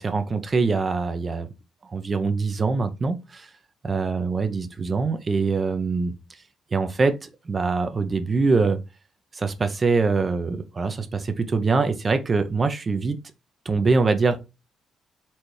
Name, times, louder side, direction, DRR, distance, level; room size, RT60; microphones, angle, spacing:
voice 1, 0.0-1.5 1.9-3.5 3.8-6.1 6.7-8.8 9.3-13.2 13.7-14.4, right 4 dB, 35° right, 0.6 m, -23 dB
4.2 x 3.3 x 3.2 m
cardioid pair, 90°, 0 cm